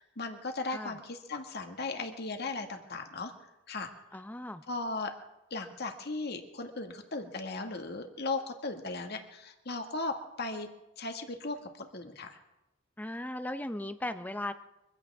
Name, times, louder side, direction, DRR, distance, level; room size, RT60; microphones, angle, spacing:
voice 1, 0.0-3.3 3.7-4.2 4.7-5.1 5.5-10.7 11.0-12.4, left 3 dB, 55° left, 5 dB, 1.8 m, -37 dB
voice 2, 4.1-4.6 13.0-14.5, left 1 dB, 10° left, 10 dB, 0.7 m, -37 dB
24.5 x 15.5 x 3.6 m, 0.96 s
head